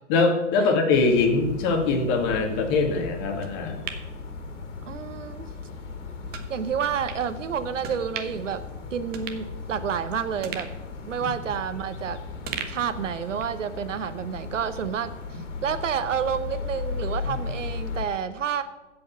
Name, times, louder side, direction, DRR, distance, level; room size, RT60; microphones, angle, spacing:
voice 1, 0.0-3.8 17.3-17.4, left 3 dB, 40° left, 4 dB, 2.0 m, -22 dB
sound 1, 0.9-18.0, left 4 dB, 75° left, 2.5 m, -37 dB
sound 2, 3.4-5.0 5.4-5.5 6.3-6.5 7.1-7.2 7.8-8.5 8.8-8.9 9.1-10.0 10.4-12.0 12.5-13.6 14.0-14.1, right 7 dB, 25° right, 1.1 m, -39 dB
voice 2, 4.9-5.5 6.5-8.6 8.9-10.7 11.1-12.2 12.7-15.1 15.6-18.6, right 7 dB, 90° right, 11 dB, 0.9 m, -29 dB
15.0 x 5.4 x 5.7 m, 1.1 s
hypercardioid pair, 130°, 36 cm